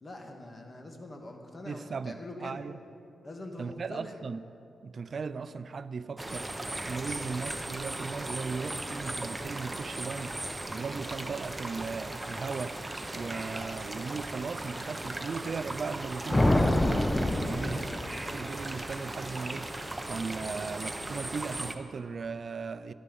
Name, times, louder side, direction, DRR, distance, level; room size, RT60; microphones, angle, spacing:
voice 1, 0.0-2.6 3.2-4.1 17.5-18.1, left 2 dB, 35° left, 1.9 m, -44 dB
voice 2, 1.7-2.8 3.6-4.4 4.8-6.5 6.9-10.4 10.7-12.8 13.1-17.9 18.3-19.7 20.1-22.9, right 5 dB, 55° right, 0.5 m, -37 dB
sound 1, 6.2-21.7, right 1 dB, 20° right, 0.9 m, -37 dB
sound 2, 16.3-18.6, left 1 dB, 15° left, 0.7 m, -26 dB
13.0 x 11.5 x 5.5 m
cardioid pair, 70°, 0 cm